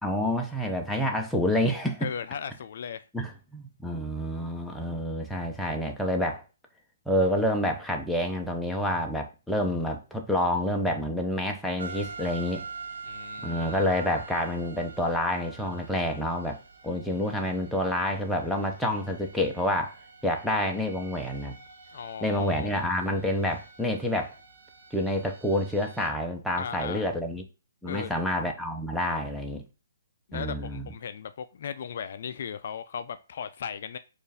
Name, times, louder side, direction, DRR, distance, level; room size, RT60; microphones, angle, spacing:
voice 1, 0.0-2.1 3.1-6.4 7.1-12.7 13.4-20.0 20.2-21.6 22.2-24.3 24.9-27.4 27.8-29.6 30.3-30.9, left 1 dB, ahead, 0.5 m, -28 dB
voice 2, 2.0-3.1 13.1-13.9 21.9-22.8 26.5-27.1 27.8-28.2 30.3-34.0, left 7 dB, 55° left, 0.3 m, -37 dB
sound 1, 11.8-26.1, right 4 dB, 75° right, 0.7 m, -45 dB
4.3 x 2.5 x 3.4 m
hypercardioid pair, 150°, 0 cm